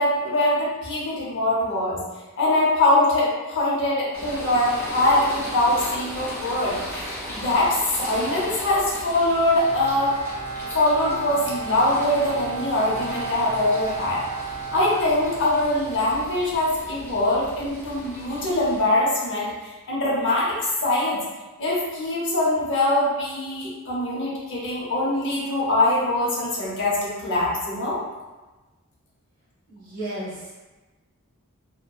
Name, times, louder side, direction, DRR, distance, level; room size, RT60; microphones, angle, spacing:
voice 1, 0.0-2.0 2.4-10.1 10.7-14.2 14.7-20.6 20.8-21.2 21.6-28.0, left 1 dB, 55° left, -5 dB, 0.7 m, -23 dB
sound 1, 4.1-18.9, equal, 10° left, 0.7 m, -37 dB
Bowed string instrument, 9.6-15.8, right 4 dB, 80° right, 0.5 m, -34 dB
voice 2, 29.7-30.5, right 1 dB, 40° right, -8 dB, 0.9 m, -33 dB
2.6 x 2.1 x 2.2 m, 1.2 s
head